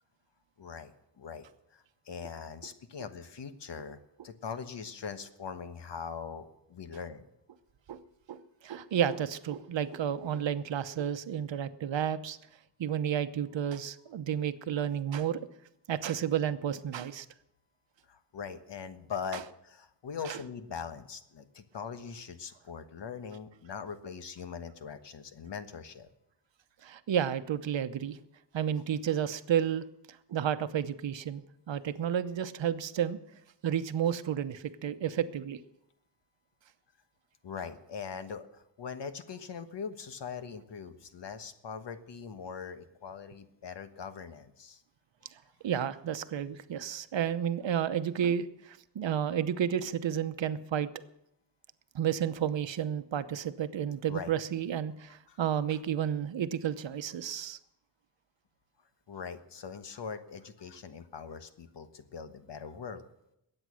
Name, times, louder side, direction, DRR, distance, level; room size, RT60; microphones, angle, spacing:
voice 1, 0.6-1.5 1.7-4.0 4.2-7.2 18.1-26.1 37.4-44.8 54.1-54.3 55.3-55.4 59.1-63.1, left 6 dB, 70° left, 9 dB, 1.3 m, -41 dB
voice 2, 8.3-12.4 12.8-15.5 15.9-17.3 19.3-19.4 20.3-20.4 26.8-28.2 28.5-29.8 30.3-33.2 33.6-35.6 45.6-50.9 51.9-57.6, right 9 dB, 80° right, 12 dB, 0.9 m, -31 dB
21.5 x 8.9 x 6.3 m, 0.84 s
wide cardioid pair, 115°, 44 cm